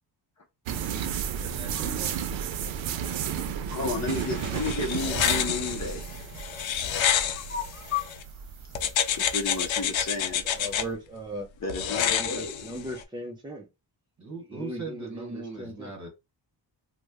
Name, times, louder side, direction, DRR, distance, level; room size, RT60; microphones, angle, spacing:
sound 1, 0.7-10.8, right 8 dB, 85° right, 0.5 m, -33 dB
voice 1, 1.3-2.3 4.0-4.2 14.2-16.1, right 3 dB, 40° right, 1.2 m, -40 dB
voice 2, 2.9-3.2 3.7-6.2 7.1-8.1 9.1-10.4 11.6-12.7, left 4 dB, 40° left, 0.6 m, -33 dB
sound 2, 4.1-8.2 8.8-10.9 11.7-13.0, left 9 dB, 85° left, 0.6 m, -29 dB
voice 3, 10.6-11.5 12.1-13.7 14.5-15.9, equal, 10° right, 0.4 m, -38 dB
3.1 x 2.1 x 3.3 m
wide cardioid pair, 170°, 45 cm